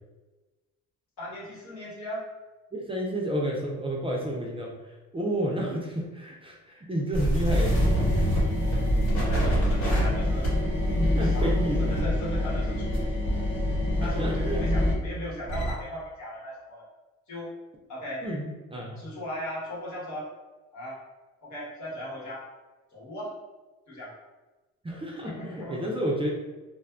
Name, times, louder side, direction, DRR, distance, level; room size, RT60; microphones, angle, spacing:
voice 1, 1.2-2.3 9.2-10.5 11.2-11.5 11.8-13.1 14.0-16.9 17.3-17.5 17.9-18.3 19.0-20.3 20.7-21.0 21.4-22.5 22.9-23.3 23.9-24.2 25.2-25.8, equal, 70° left, -7 dB, 1.2 m, -37 dB
voice 2, 2.7-7.8 8.1-8.4 11.0-12.0 14.0-14.6 18.2-19.0 24.8-25.3 25.7-26.3, right 1 dB, 20° right, -2 dB, 0.4 m, -31 dB
sound 1, 7.1-13.4 13.7-15.7, right 1 dB, 90° left, 1.4 m, -28 dB
sound 2, 7.5-14.9, left 1 dB, 40° left, 0.7 m, -27 dB
2.4 x 2.2 x 2.4 m, 1.2 s
cardioid pair, 90°, 30 cm